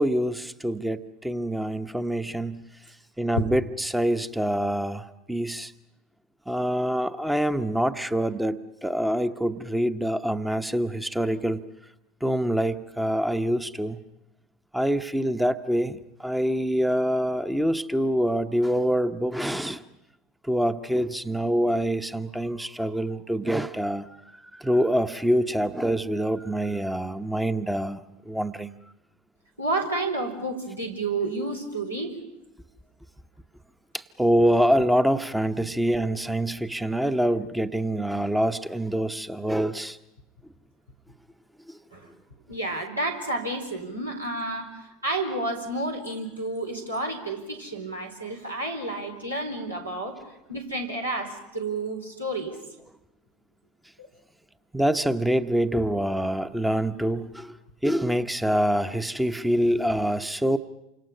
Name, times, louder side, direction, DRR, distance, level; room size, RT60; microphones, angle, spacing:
voice 1, 0.0-2.6 3.2-5.7 6.5-11.6 12.2-14.0 14.7-19.8 20.4-28.0 28.3-28.7 33.9-40.0 41.7-41.8 54.7-57.5 57.8-60.6, equal, 5° right, 11 dB, 0.9 m, -25 dB
voice 2, 29.6-32.1 41.9-42.1 42.5-50.2 50.5-52.6 54.0-54.1, right 2 dB, 85° right, 0 dB, 4.1 m, -30 dB
28.5 x 26.0 x 5.6 m, 0.91 s
figure-of-eight pair, 75°, 0 cm